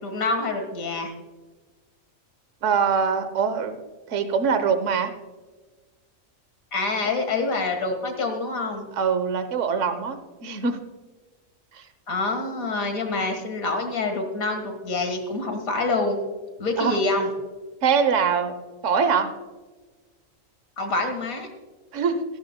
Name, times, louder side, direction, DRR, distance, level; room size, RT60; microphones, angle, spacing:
voice 1, 0.0-1.1 6.7-8.8 12.1-16.2 16.6-17.3 20.8-21.5, left 3 dB, 85° left, 5 dB, 2.1 m, -26 dB
voice 2, 2.6-3.8 4.1-5.1 9.0-10.8 11.7-11.9 16.8-17.0 17.8-18.6 18.8-19.3 21.9-22.2, right 6 dB, 65° right, 10 dB, 1.2 m, -23 dB
16.5 x 13.0 x 2.2 m, 1.3 s
omnidirectional pair, 1.4 m